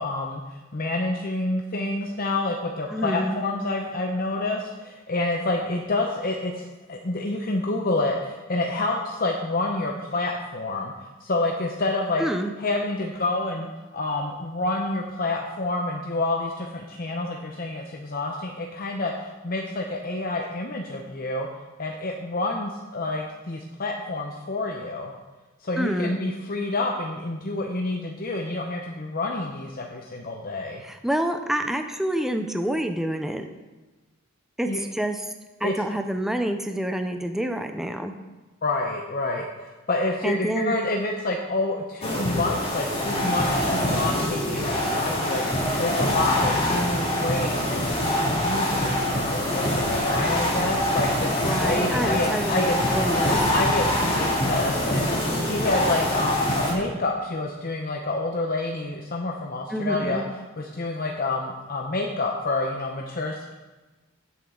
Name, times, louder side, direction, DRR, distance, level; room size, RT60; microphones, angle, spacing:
voice 1, 0.0-10.9 11.2-12.2 12.6-21.5 21.8-25.1 25.6-30.8 34.7-34.8 35.6-35.7 38.6-52.8 53.5-60.2 60.6-63.5, left 2 dB, 45° left, 1 dB, 0.8 m, -28 dB
voice 2, 2.9-3.4 12.2-12.5 25.8-26.2 30.8-33.5 34.6-35.3 35.6-38.1 40.2-40.8 51.4-53.4 59.7-60.3, right 1 dB, ahead, 6 dB, 0.5 m, -27 dB
sound 1, 42.0-56.7, left 1 dB, 30° left, 2.2 m, -24 dB
15.5 x 7.4 x 3.8 m, 1.2 s
head